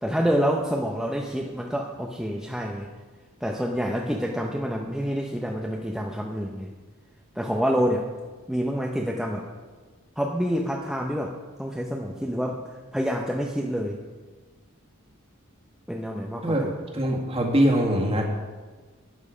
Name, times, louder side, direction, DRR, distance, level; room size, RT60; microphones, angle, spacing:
voice 1, 0.0-2.9 3.4-6.7 7.4-8.1 8.5-9.5 10.2-11.3 11.6-12.6 12.9-14.0 15.9-16.5, equal, ahead, 0 dB, 0.7 m, -27 dB
voice 2, 16.9-18.2, equal, 30° right, 0 dB, 2.0 m, -22 dB
12.5 x 8.8 x 5.0 m, 1.4 s
head